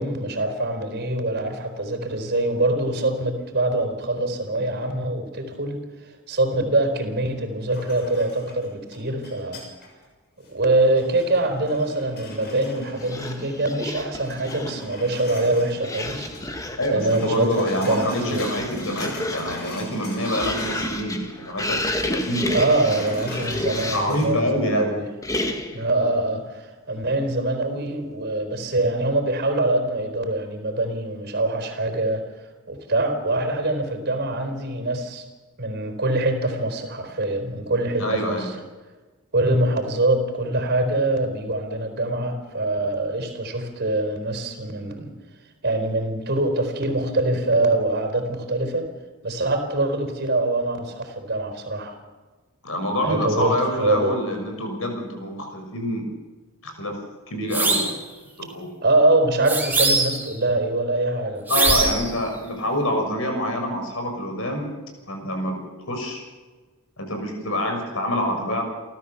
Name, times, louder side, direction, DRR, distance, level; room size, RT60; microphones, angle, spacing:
voice 1, 0.0-5.8 6.3-9.6 10.4-16.3 16.9-18.5 22.5-25.1 25.7-32.3 32.7-35.2 35.6-38.5 39.3-45.1 45.6-48.9 49.2-52.0 53.0-54.2 58.8-61.5, right 2 dB, 50° right, 7 dB, 4.3 m, -24 dB
sound 1, 7.7-10.0 10.4-13.7 14.0-16.5 16.7-21.0 21.3-24.3, equal, 50° left, 7.1 m, -40 dB
sound 2, 13.0-14.9 15.8-17.0 17.7-24.2 25.2-25.9, left 1 dB, 15° left, 1.8 m, -31 dB
voice 2, 16.8-21.8 22.1-22.8 23.9-24.9 38.0-38.5 52.6-56.0 56.6-57.0 57.3-57.9 58.4-58.7 61.5-64.7 65.1-66.2 67.0-68.6, equal, 70° left, 4 dB, 6.3 m, -26 dB
sound 3, 57.5-58.0 59.5-60.3 61.5-62.1, right 3 dB, 10° right, 3.8 m, -21 dB
29.5 x 14.0 x 7.1 m, 1.3 s
head